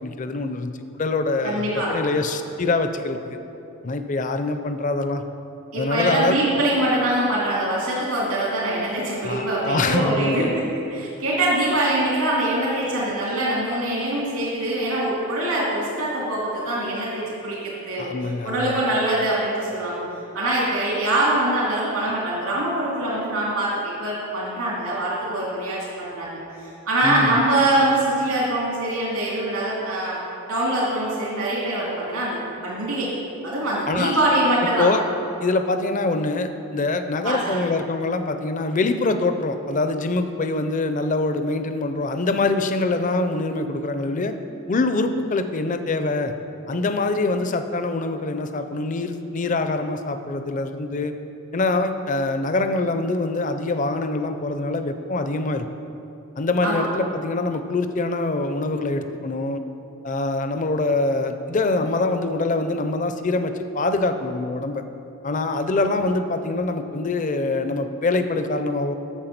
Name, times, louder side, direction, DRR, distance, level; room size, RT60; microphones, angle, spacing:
voice 1, 0.0-3.4 3.8-5.2 5.8-6.4 9.2-10.5 18.0-18.8 27.0-27.4 33.9-34.2 34.8-35.0 35.4-44.3 44.7-46.3 46.7-51.1 51.5-55.7 56.4-59.6 60.0-64.8 65.2-68.9, left 2 dB, 35° left, 8 dB, 0.5 m, -24 dB
voice 2, 1.4-2.0 5.7-10.6 10.9-18.1 18.4-20.0 20.3-30.2 30.5-33.1 33.4-34.9 37.2-37.7 56.6-56.9, right 1 dB, 80° right, -6 dB, 2.4 m, -23 dB
8.9 x 7.3 x 5.9 m, 2.9 s
head